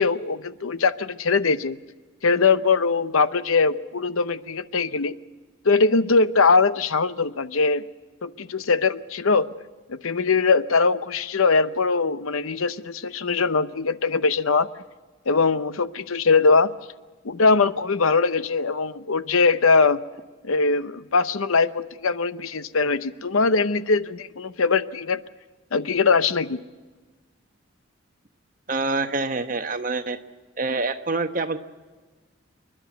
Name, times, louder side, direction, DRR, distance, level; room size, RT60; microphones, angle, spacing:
voice 1, 0.0-1.8 2.2-5.2 5.6-7.8 8.2-9.5 9.9-14.7 15.3-16.7 17.2-20.0 20.4-25.2 25.7-26.6, left 4 dB, 90° left, 14 dB, 0.8 m, -21 dB
voice 2, 28.7-30.2 30.6-31.6, right 3 dB, 40° right, 8 dB, 1.1 m, -26 dB
28.0 x 11.5 x 9.3 m, 1.3 s
head